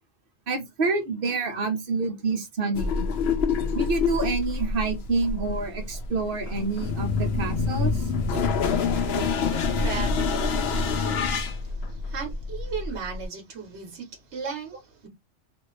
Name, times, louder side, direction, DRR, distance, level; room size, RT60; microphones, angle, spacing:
voice 1, 0.5-3.1 3.7-8.1 11.3-11.4, right 3 dB, 55° right, 0.9 m, -28 dB
sound 1, 2.8-13.2, left 4 dB, 65° left, 0.8 m, -27 dB
voice 2, 8.6-11.3 11.6-15.1, right 6 dB, 70° right, 1.2 m, -37 dB
2.7 x 2.5 x 3.0 m
omnidirectional pair, 1.2 m